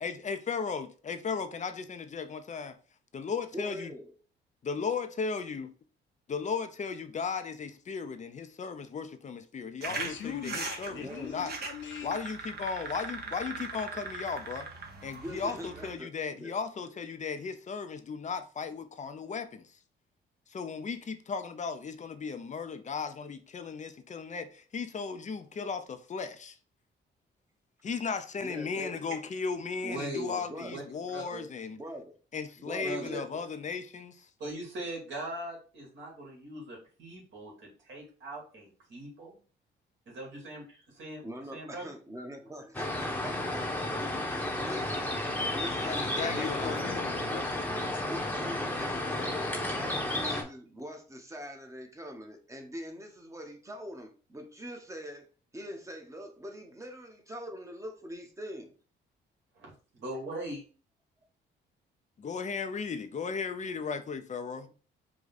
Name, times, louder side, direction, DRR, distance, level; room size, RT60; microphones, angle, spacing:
voice 1, 0.0-2.8 3.1-3.9 4.6-5.7 6.3-11.5 12.0-14.7 15.0-19.8 20.5-26.6 27.8-31.8 32.3-34.3 45.8-47.0 62.2-64.7, left 5 dB, 35° left, 0.6 m, -36 dB
voice 2, 3.5-4.1 10.8-11.4 15.2-16.5 28.4-29.0 30.2-30.8 31.7-32.1 32.6-33.4 41.2-47.0 47.9-58.7, equal, 15° right, 1.0 m, -43 dB
voice 3, 9.8-12.2 46.2-48.3, left 7 dB, 70° left, 1.0 m, -41 dB
sound 1, 9.8-15.9, right 4 dB, 50° right, 1.1 m, -40 dB
voice 4, 29.8-30.3 30.6-30.8 31.1-31.4 32.8-33.1 34.4-39.3 40.1-41.2 41.5-41.9 59.6-60.6, right 1 dB, 70° right, 2.2 m, -40 dB
sound 2, 42.7-50.4, left 1 dB, 10° left, 1.0 m, -32 dB
4.9 x 2.3 x 4.0 m
cardioid pair, 90°, 20 cm